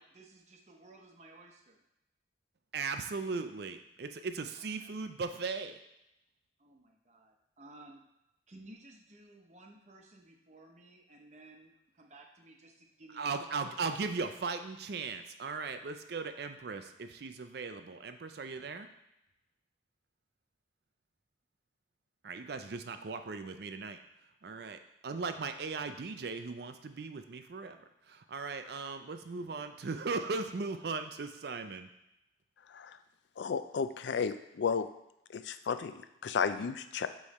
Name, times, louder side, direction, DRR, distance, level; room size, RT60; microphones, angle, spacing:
voice 1, 0.0-1.8 4.5-4.9 6.6-8.0 8.5-14.3, right 2 dB, 35° right, 2 dB, 0.8 m, -56 dB
voice 2, 2.7-5.8 13.1-18.9 22.2-24.0 24.4-27.8 28.1-31.9, right 4 dB, 55° right, 8 dB, 0.4 m, -38 dB
voice 3, 32.7-33.0 33.4-34.9 35.3-37.1, left 6 dB, 70° left, 11 dB, 0.4 m, -33 dB
8.4 x 3.2 x 4.2 m, 0.87 s
head